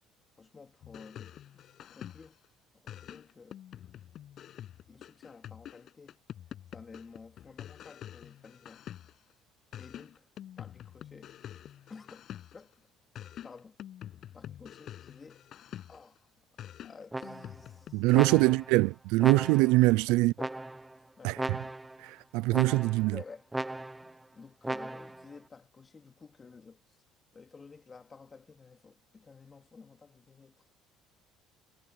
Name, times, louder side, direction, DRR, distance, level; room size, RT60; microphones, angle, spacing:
voice 1, 0.4-2.4 2.7-3.6 4.9-6.2 6.7-8.9 9.7-10.3 10.6-11.4 11.9-12.9 13.4-13.8 14.3-15.5 15.9-16.3 16.8-18.6 19.2-19.3 20.4-20.6 21.2-21.4 23.1-23.5 24.0-27.0 27.3-30.7, left 4 dB, 25° left, 3.7 m, -52 dB
sound 1, 0.8-2.5 2.9-9.3 9.7-12.7 13.2-16.2 16.6-18.6, left 11 dB, 55° left, 6.9 m, -47 dB
sound 2, 17.1-17.7 18.1-18.8 19.2-19.8 20.4-21.0 21.4-22.0 22.5-23.1 23.5-24.1 24.6-25.2, right 2 dB, 10° right, 0.8 m, -37 dB
voice 2, 17.9-20.3 21.2-21.6 22.0-23.2, right 22 dB, 90° right, 0.5 m, -24 dB
cardioid pair, 110°, 0 cm